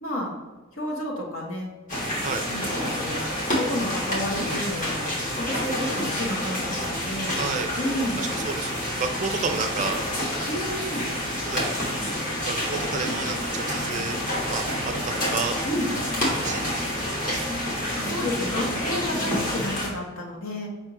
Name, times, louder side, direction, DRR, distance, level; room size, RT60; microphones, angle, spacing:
voice 1, 0.0-0.4 0.7-1.7 2.5-5.1 5.4-7.4 7.8-8.2 10.5-11.1 12.9-13.1 15.7-15.9 18.0-20.7, left 1 dB, 75° left, -1 dB, 1.1 m, -31 dB
sound 1, 1.9-19.9, equal, 40° left, 1.3 m, -28 dB
voice 2, 7.4-7.7 8.2-8.7 9.0-10.0 11.5-11.8 12.5-14.2 14.5-15.6 16.3-16.6 17.0-17.4, right 5 dB, 35° right, 6 dB, 0.4 m, -31 dB
4.9 x 3.5 x 2.9 m, 1.2 s
head